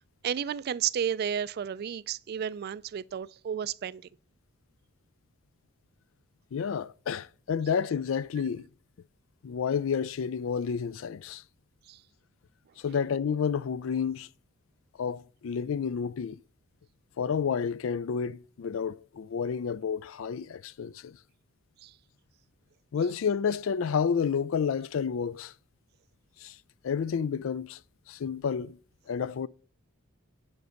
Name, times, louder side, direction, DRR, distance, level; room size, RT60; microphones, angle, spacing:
voice 1, 0.2-4.1 11.9-12.0 21.8-21.9, right 8 dB, 50° right, 0.3 m, -32 dB
voice 2, 6.5-8.7 9.4-11.4 12.8-14.3 15.0-16.4 17.2-21.2 22.9-25.5 26.4-26.6 26.8-27.8 28.1-28.8 29.1-29.5, left 6 dB, 65° left, 0.4 m, -30 dB
9.4 x 5.3 x 6.3 m
head